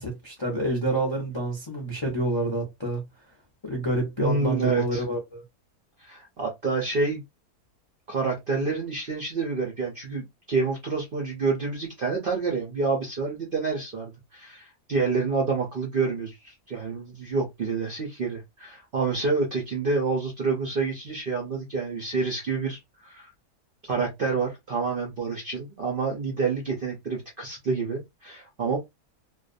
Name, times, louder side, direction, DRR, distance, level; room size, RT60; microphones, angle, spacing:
voice 1, 0.0-3.0 3.6-5.4, right 1 dB, 35° left, 0.4 m, -28 dB
voice 2, 4.2-5.0 6.0-7.2 8.1-23.3 23.8-28.8, right 4 dB, 60° right, 0.6 m, -28 dB
2.5 x 2.2 x 2.4 m
omnidirectional pair, 1.6 m